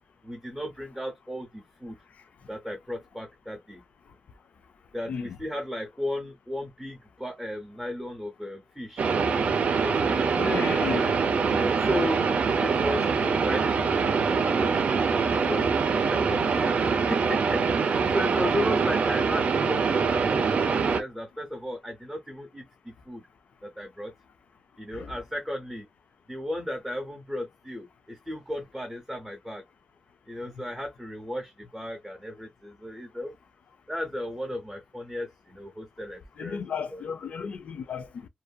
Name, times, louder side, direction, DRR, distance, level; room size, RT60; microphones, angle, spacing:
voice 1, 0.2-2.0 2.5-3.8 4.9-9.1 9.7-11.1 11.5-12.2 12.6-15.0 15.5-23.2 23.6-24.1 24.8-25.9 26.3-29.6 30.3-33.3 33.9-36.6 36.9-37.0, equal, 5° right, 0.7 m, -35 dB
sound 1, 9.0-21.0, right 5 dB, 70° right, 0.5 m, -24 dB
voice 2, 10.3-11.2 24.9-25.1 36.4-38.3, left 6 dB, 75° left, 0.4 m, -34 dB
2.7 x 2.5 x 2.3 m
wide cardioid pair, 165°, 2 cm